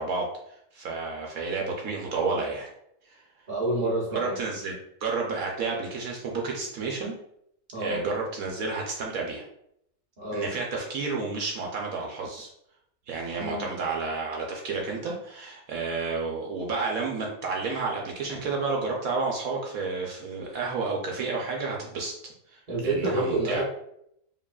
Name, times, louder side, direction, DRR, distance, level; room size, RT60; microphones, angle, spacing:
voice 1, 0.0-2.7 3.1-3.2 4.1-4.7 5.0-7.1 7.8-9.4 10.3-12.5 13.1-22.1 22.5-23.6, right 4 dB, 70° right, 0 dB, 1.1 m, -31 dB
voice 2, 3.5-4.4 7.7-8.0 10.2-10.5 13.4-13.7 22.7-23.6, right 2 dB, 40° right, -5 dB, 0.7 m, -28 dB
4.9 x 3.0 x 2.3 m, 0.74 s
omnidirectional pair, 1.7 m